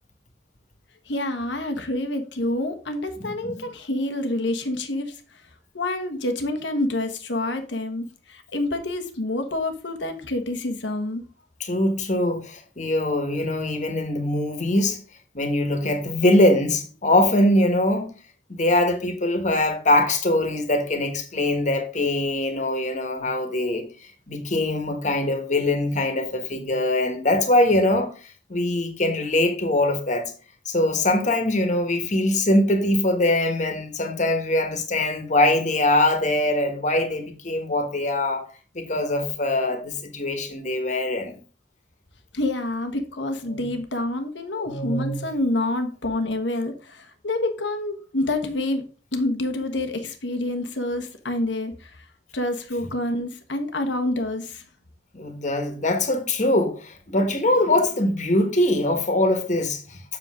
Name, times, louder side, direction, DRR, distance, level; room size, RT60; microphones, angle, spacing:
voice 1, 1.1-5.4 5.7-11.2 42.3-48.8 49.1-52.0 52.3-54.6, left 1 dB, 85° left, 1.3 m, -27 dB
voice 2, 3.2-3.6 11.6-15.0 15.3-18.1 18.5-23.9 24.3-30.3 30.6-38.4 38.7-41.4 43.5-43.7 44.6-45.2 55.1-60.0, left 1 dB, 45° left, 1.5 m, -22 dB
7.6 x 6.8 x 3.7 m
head